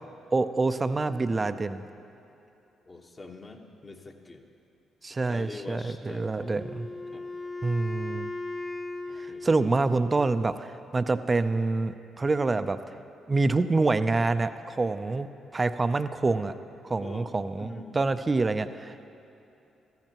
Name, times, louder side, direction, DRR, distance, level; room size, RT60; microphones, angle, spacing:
voice 1, 0.3-1.9 5.0-6.9 7.6-8.3 9.2-12.8 13.3-15.3 15.5-16.5 16.8-19.1, right 3 dB, 30° right, 11 dB, 0.5 m, -26 dB
voice 2, 2.9-4.4 5.2-6.2 7.1-7.2 9.1-9.5 17.0-18.0, left 3 dB, 35° left, 2 dB, 1.3 m, -44 dB
Wind instrument woodwind instrument, 6.4-10.4, left 2 dB, 15° left, 0.8 m, -38 dB
15.0 x 14.0 x 3.0 m, 2.9 s
hypercardioid pair, 50°, 0 cm